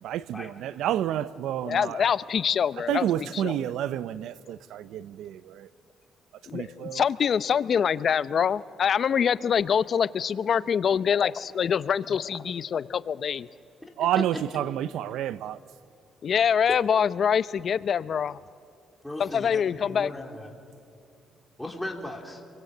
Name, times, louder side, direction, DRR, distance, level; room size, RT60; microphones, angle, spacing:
voice 1, 0.0-2.1 2.9-5.7 6.5-7.0 14.0-15.6, right 11 dB, 85° right, 0.5 m, -29 dB
voice 2, 1.6-3.1 3.3-3.7 6.5-13.5 16.2-18.4 19.2-20.1, left 7 dB, 55° left, 0.6 m, -25 dB
voice 3, 13.8-14.4 19.0-19.6 19.9-20.5 21.6-22.4, left 1 dB, 5° left, 3.5 m, -37 dB
29.0 x 23.5 x 7.9 m
cardioid pair, 90°, 0 cm